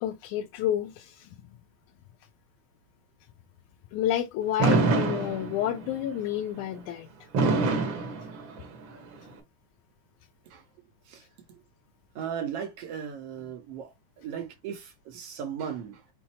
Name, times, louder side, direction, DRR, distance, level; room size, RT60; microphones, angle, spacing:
voice 1, 0.0-1.3 3.9-7.1, left 11 dB, 80° left, 2.0 m, -30 dB
Fireworks, 4.6-5.9 7.3-8.9, right 3 dB, 55° right, 1.4 m, -25 dB
voice 2, 11.1-11.6 12.1-16.0, right 8 dB, 70° right, 1.5 m, -37 dB
5.8 x 2.0 x 4.1 m
omnidirectional pair, 3.4 m